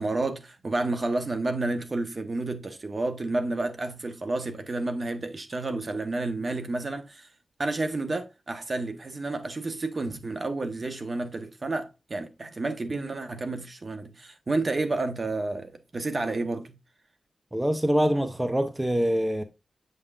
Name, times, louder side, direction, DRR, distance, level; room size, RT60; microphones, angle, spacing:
voice 1, 0.0-7.3 7.6-16.7, right 2 dB, 45° right, 1.1 m, -30 dB
voice 2, 17.5-19.4, equal, 10° right, 0.7 m, -24 dB
7.7 x 5.5 x 2.4 m
wide cardioid pair, 70°, 0 cm